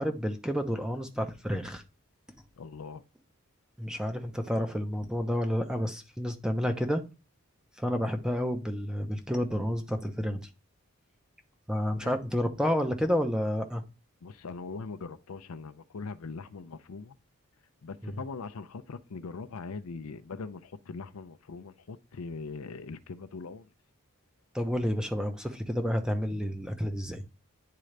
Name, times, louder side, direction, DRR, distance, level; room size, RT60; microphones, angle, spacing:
voice 1, 0.0-1.8 3.8-7.0 7.8-10.5 11.7-13.8 18.0-18.1 24.5-27.2, equal, 5° right, 0.8 m, -30 dB
voice 2, 2.6-3.0 12.0-12.1 14.2-17.2 17.8-23.7, left 4 dB, 85° left, 0.6 m, -41 dB
10.5 x 3.8 x 3.3 m
head